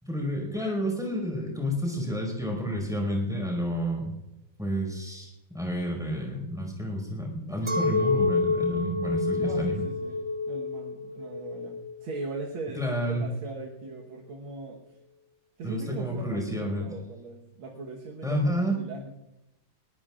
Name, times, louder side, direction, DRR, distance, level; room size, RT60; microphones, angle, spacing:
voice 1, 0.0-4.1 4.6-9.8 12.7-13.3 15.6-16.9 18.2-18.8, equal, ahead, 0 dB, 5.2 m, -30 dB
Chink clink, 7.7-13.1, left 3 dB, 35° right, 0.4 m, -29 dB
voice 2, 9.4-15.0 15.6-19.1, right 3 dB, 80° right, -1 dB, 2.2 m, -40 dB
21.5 x 18.5 x 2.5 m, 0.94 s
omnidirectional pair, 2.2 m